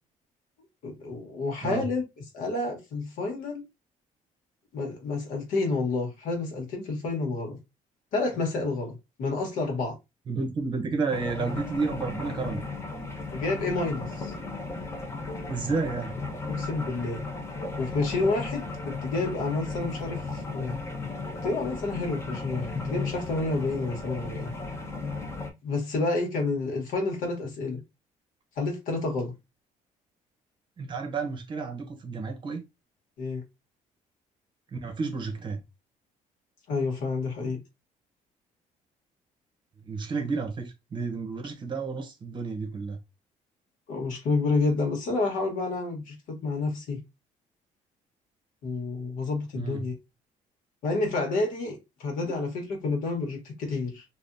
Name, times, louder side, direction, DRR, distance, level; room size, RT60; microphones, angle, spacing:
voice 1, 0.8-2.0 2.3-3.6 4.7-7.6 8.1-10.0 13.3-14.3 16.5-17.2 17.8-20.8 21.4-24.5 25.6-27.8 28.6-29.3 33.2-33.4 36.7-37.6 43.9-47.0 48.6-49.9 50.8-54.0, left 3 dB, 80° left, 1.3 m, -29 dB
voice 2, 10.3-12.6 15.5-16.1 30.8-32.6 34.7-35.6 39.8-43.0 49.5-49.8 52.2-52.3, right 4 dB, 35° right, 0.7 m, -31 dB
sound 1, 11.1-25.5, left 3 dB, 20° left, 0.6 m, -35 dB
3.4 x 2.4 x 2.5 m
cardioid pair, 150°, 14 cm